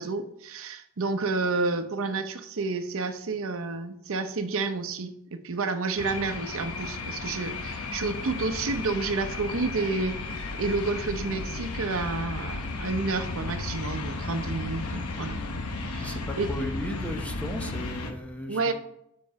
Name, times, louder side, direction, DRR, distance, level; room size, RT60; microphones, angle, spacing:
voice 1, 0.0-15.4 15.8-16.5 18.5-18.7, right 3 dB, 65° right, 9 dB, 0.7 m, -30 dB
sound 1, 6.0-18.1, left 3 dB, 80° left, 0.9 m, -34 dB
voice 2, 16.0-18.7, left 1 dB, 5° left, 4 dB, 0.7 m, -35 dB
7.6 x 5.2 x 4.7 m, 0.78 s
head